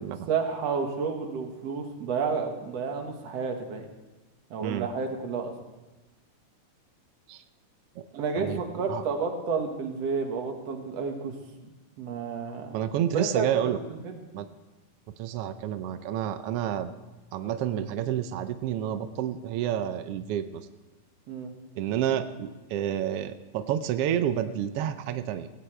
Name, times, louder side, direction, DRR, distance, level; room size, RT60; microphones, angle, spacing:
voice 1, 0.3-3.9 4.5-5.5 8.1-11.3 11.6-12.8 13.1-14.2 21.3-21.5, right 5 dB, 60° right, 4 dB, 2.5 m, -31 dB
voice 2, 12.7-13.8 14.3-14.4 15.2-16.9 17.3-20.6 21.8-25.5, right 10 dB, 80° right, 10 dB, 1.3 m, -29 dB
17.5 x 17.0 x 3.3 m, 1.1 s
omnidirectional pair, 3.5 m